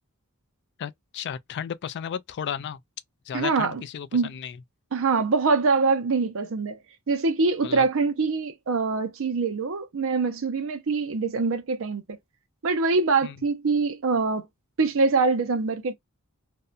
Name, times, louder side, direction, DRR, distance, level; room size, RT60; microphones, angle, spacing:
voice 1, 0.8-2.8 3.3-4.6 7.6-7.9 13.2-13.3, left 8 dB, 50° left, 0.3 m, -34 dB
voice 2, 3.3-3.8 4.1-4.3 4.9-6.8 7.1-12.0 12.6-14.5 14.8-15.9, right 4 dB, 65° right, 0.6 m, -24 dB
2.6 x 2.1 x 2.4 m
head